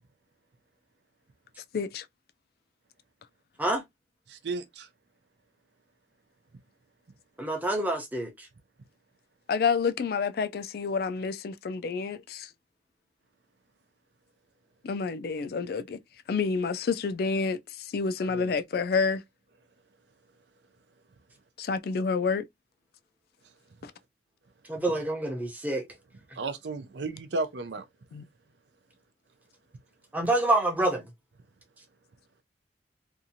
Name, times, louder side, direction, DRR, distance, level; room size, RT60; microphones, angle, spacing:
voice 1, 1.7-2.1 9.5-12.5 14.8-16.0 16.3-19.2 21.6-22.4 23.8-23.9 28.1-28.2, left 5 dB, 55° left, 0.3 m, -29 dB
voice 2, 4.3-4.9 18.2-18.6 26.3-27.9, right 3 dB, 75° right, 0.5 m, -34 dB
voice 3, 7.4-8.5 24.7-25.8 30.1-31.1, right 2 dB, 10° right, 0.7 m, -27 dB
2.7 x 2.4 x 2.7 m
head